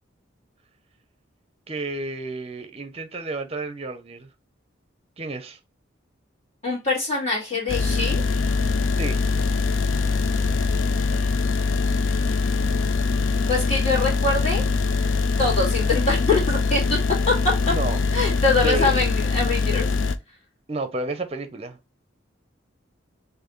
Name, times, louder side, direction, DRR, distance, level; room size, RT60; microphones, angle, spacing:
voice 1, 1.7-4.3 5.2-5.6 9.0-9.2 17.7-18.0 18.6-18.9 20.7-21.8, right 2 dB, 30° right, 0.6 m, -31 dB
voice 2, 6.6-8.2 13.5-14.6 15.4-17.0 17.3-17.5 18.1-19.9, left 3 dB, 35° left, 2.2 m, -23 dB
sound 1, 7.7-20.2, left 4 dB, 80° left, 0.4 m, -23 dB
4.6 x 2.6 x 3.0 m
head